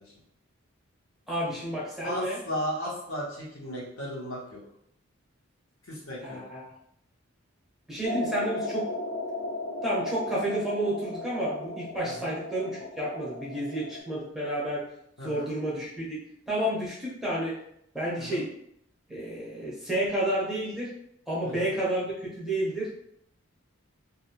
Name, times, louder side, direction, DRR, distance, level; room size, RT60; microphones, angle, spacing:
voice 1, 1.3-2.4 6.2-6.6 7.9-8.9 9.8-12.7 13.0-14.8 15.2-16.2 16.5-17.6 17.9-18.5 19.1-20.9 21.3-22.1 22.4-22.9, right 1 dB, ahead, -7 dB, 0.6 m, -30 dB
voice 2, 2.0-4.6 5.9-6.4 12.0-12.3 15.2-15.5 18.2-18.4 21.4-21.7, equal, 80° left, -5 dB, 0.9 m, -35 dB
sound 1, 8.0-14.0, left 1 dB, 45° left, 0.4 m, -35 dB
2.5 x 2.1 x 2.8 m, 0.72 s
head